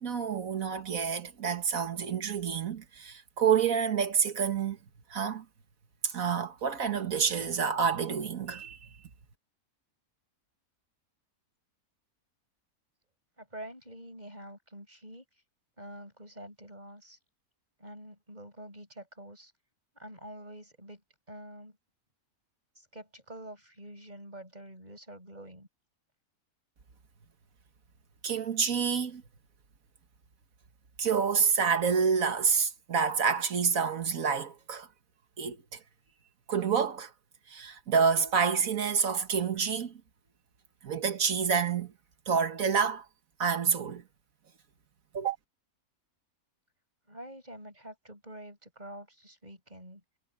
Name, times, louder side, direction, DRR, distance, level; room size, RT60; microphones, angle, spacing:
voice 1, 0.0-4.8 5.1-5.5 6.0-8.9 28.2-29.2 31.0-34.9 35.4-35.8 36.5-37.1 37.5-39.9 40.8-41.9 42.3-43.1 43.4-44.0 45.1-45.4, right 6 dB, 65° right, 1.9 m, -28 dB
voice 2, 13.4-15.2 15.8-17.2 17.8-19.5 19.9-21.0 21.3-21.8 22.8-25.7 47.1-50.0, right 1 dB, 30° right, 7.4 m, -47 dB
omnidirectional pair, 1.6 m